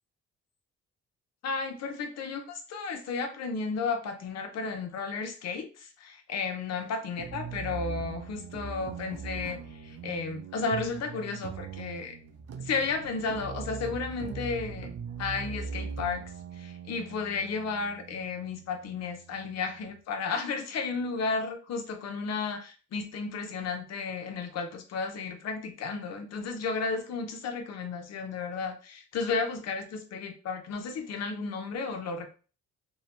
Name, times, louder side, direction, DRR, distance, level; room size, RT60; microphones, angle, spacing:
voice 1, 1.4-12.1 12.6-14.9 15.2-16.2 16.6-32.3, left 4 dB, 60° left, 6 dB, 0.6 m, -33 dB
sound 1, 7.2-20.0, right 5 dB, 55° right, 0.5 m, -41 dB
2.7 x 2.1 x 2.8 m, 0.37 s
cardioid pair, 90°, 30 cm